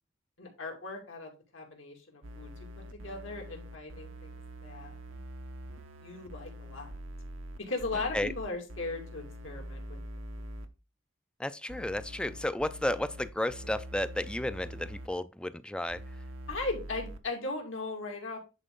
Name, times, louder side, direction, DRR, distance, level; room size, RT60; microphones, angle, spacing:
voice 1, 0.4-2.5 2.9-4.3 4.6-5.0 6.0-6.9 7.6-10.0 16.5-18.4, left 3 dB, 80° left, 2.5 m, -38 dB
sound 1, 2.2-10.7 11.7-15.1 15.9-17.2, equal, 85° right, 0.9 m, -44 dB
voice 2, 11.4-16.0, left 1 dB, 5° left, 0.3 m, -33 dB
10.0 x 4.5 x 3.8 m
head